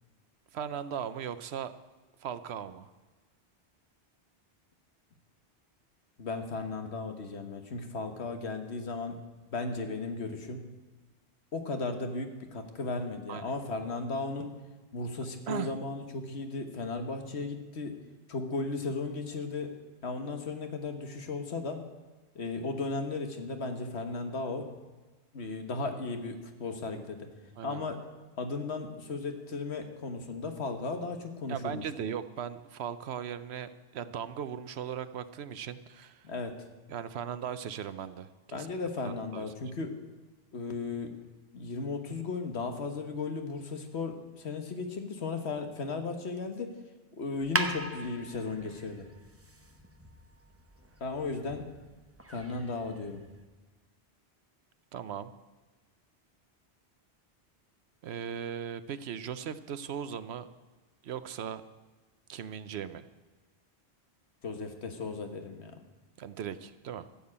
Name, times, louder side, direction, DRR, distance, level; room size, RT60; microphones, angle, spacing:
voice 1, 0.5-1.7 2.2-2.9 13.3-13.4 15.5-15.7 27.6-27.8 31.5-36.3 36.9-38.7 39.0-39.5 54.9-55.3 58.0-60.5 61.0-61.6 62.3-63.0 66.2-67.1, right 8 dB, 75° right, 13 dB, 0.9 m, -38 dB
voice 2, 6.2-9.2 9.5-10.7 11.5-14.5 14.9-18.0 18.3-19.7 20.0-21.8 22.3-24.7 25.3-27.3 27.6-28.0 28.4-31.8 36.2-36.5 38.5-39.9 40.5-41.1 41.5-46.7 47.2-49.1 51.0-51.7 52.3-53.2 64.4-65.7, left 3 dB, 75° left, 6 dB, 1.6 m, -35 dB
sound 1, 47.3-53.4, right 2 dB, 15° right, 0.8 m, -40 dB
14.0 x 7.2 x 8.6 m, 1.3 s
omnidirectional pair, 1.1 m